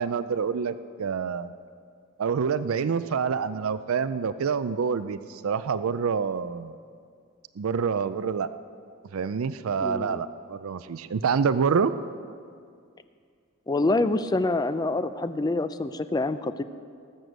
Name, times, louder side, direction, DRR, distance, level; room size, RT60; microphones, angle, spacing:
voice 1, 0.0-1.5 2.2-6.7 7.6-8.5 9.1-11.9, right 6 dB, 80° right, 13 dB, 0.4 m, -27 dB
voice 2, 9.8-10.2 13.7-16.6, left 2 dB, 20° left, 12 dB, 0.4 m, -26 dB
18.5 x 7.8 x 6.5 m, 2.2 s
head